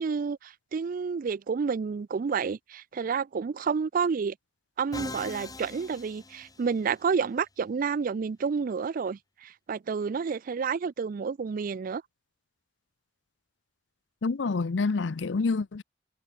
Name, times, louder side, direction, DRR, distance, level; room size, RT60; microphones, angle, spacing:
voice 1, 0.0-4.3 4.8-12.0, right 5 dB, 45° right, 0.4 m, -30 dB
Musical instrument, 4.9-7.0, left 2 dB, 20° left, 4.2 m, -41 dB
voice 2, 14.2-15.8, left 4 dB, 70° left, 0.6 m, -27 dB
head